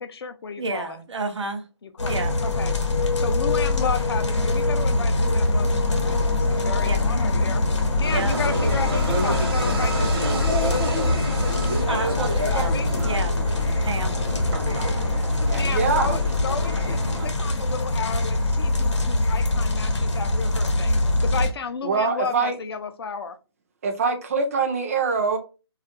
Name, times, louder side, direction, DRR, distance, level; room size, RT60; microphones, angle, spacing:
voice 1, 0.0-1.0 1.8-2.1 2.4-2.7 3.1-7.6 8.0-11.4 11.8-12.9 15.5-20.9 21.2-23.4, left 5 dB, 60° left, 0.4 m, -33 dB
voice 2, 0.6-1.7 2.1-2.4 6.8-7.0 8.1-8.5 11.9-12.7 13.0-13.3 13.8-14.2 14.5-15.1, right 3 dB, 85° right, 0.6 m, -30 dB
sound 1, 2.0-21.5, left 2 dB, 90° left, 0.7 m, -23 dB
sound 2, 8.0-17.3, right 1 dB, 55° right, 0.8 m, -30 dB
voice 3, 15.5-16.2 21.8-22.5 23.8-25.4, right 4 dB, 30° right, 0.4 m, -24 dB
2.3 x 2.0 x 2.8 m
hypercardioid pair, 160°, 15 cm